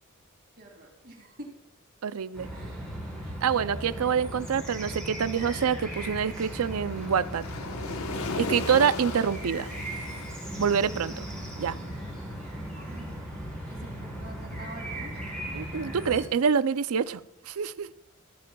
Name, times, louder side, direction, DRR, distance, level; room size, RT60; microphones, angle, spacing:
voice 1, 0.6-1.5 2.5-2.9 12.7-13.1 13.7-15.4, right 1 dB, 45° right, 1 dB, 2.4 m, -47 dB
voice 2, 2.0-2.5 3.4-7.5 8.3-9.7 10.6-11.3 11.6-11.8 15.5-17.2 17.5-17.9, right 7 dB, 85° right, 16 dB, 0.5 m, -26 dB
sound 1, 2.3-16.2, right 1 dB, 5° left, 4.3 m, -37 dB
Waves surf, 5.9-13.0, left 3 dB, 85° left, 1.1 m, -38 dB
14.5 x 13.5 x 2.3 m, 0.83 s
head